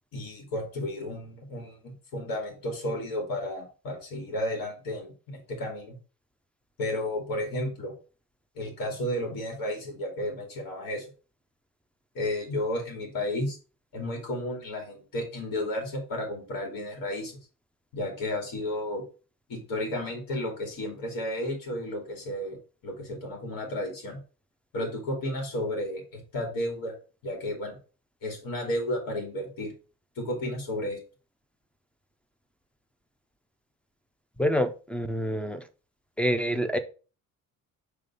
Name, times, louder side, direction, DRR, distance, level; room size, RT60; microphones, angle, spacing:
voice 1, 0.1-6.0 6.8-7.9 8.5-11.0 12.1-13.6 13.9-17.4 17.9-19.0 19.5-22.6 22.8-24.2 24.7-26.9 27.2-27.8 28.2-29.7 30.2-31.0, left 1 dB, 85° left, 1 dB, 2.5 m, -32 dB
voice 2, 34.4-35.6 36.2-36.8, equal, 5° left, 9 dB, 0.4 m, -27 dB
5.3 x 3.3 x 5.3 m, 0.36 s
cardioid pair, 170°, 33 cm